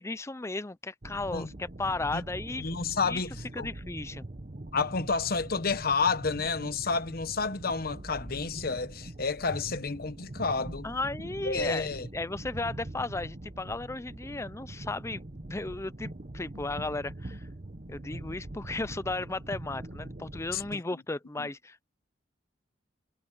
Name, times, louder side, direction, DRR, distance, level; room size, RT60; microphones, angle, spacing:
voice 1, 0.0-2.6 3.0-3.2 3.5-4.2 10.8-11.9 12.1-15.2 15.5-17.4 17.9-21.8, left 2 dB, 15° left, 0.5 m, -35 dB
sound 1, 1.0-20.8, right 1 dB, 40° right, 1.1 m, -43 dB
voice 2, 2.6-3.7 4.7-10.9 11.4-12.1 20.5-20.8 21.4-21.5, left 4 dB, 55° left, 1.1 m, -30 dB
head